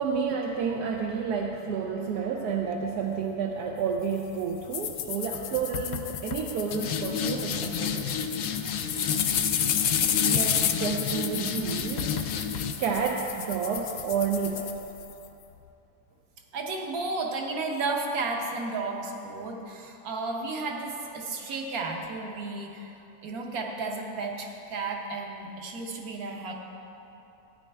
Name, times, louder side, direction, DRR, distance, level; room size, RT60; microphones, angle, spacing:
voice 1, 0.0-8.2 10.2-12.2 12.8-14.7, right 6 dB, 80° right, 0 dB, 1.2 m, -30 dB
sound 1, 4.7-15.3, left 8 dB, 70° left, 1.0 m, -29 dB
voice 2, 16.5-22.9 23.2-26.5, right 3 dB, 65° right, 1 dB, 1.5 m, -33 dB
14.5 x 9.5 x 3.4 m, 3.0 s
omnidirectional pair, 1.7 m